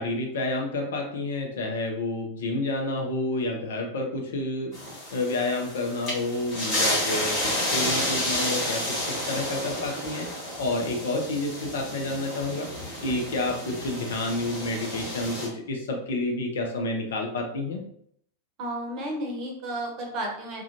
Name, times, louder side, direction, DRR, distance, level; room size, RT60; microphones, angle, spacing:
voice 1, 0.0-4.7 5.1-7.3 7.7-8.8 9.1-10.3 10.6-12.7 13.0-17.8, left 2 dB, 60° left, 1 dB, 0.5 m, -29 dB
sound 1, 4.7-15.5, left 1 dB, 35° left, 1.3 m, -31 dB
voice 2, 18.6-20.6, right 1 dB, 35° right, 0 dB, 0.7 m, -32 dB
2.4 x 2.2 x 2.8 m, 0.68 s
figure-of-eight pair, 90°, 0 cm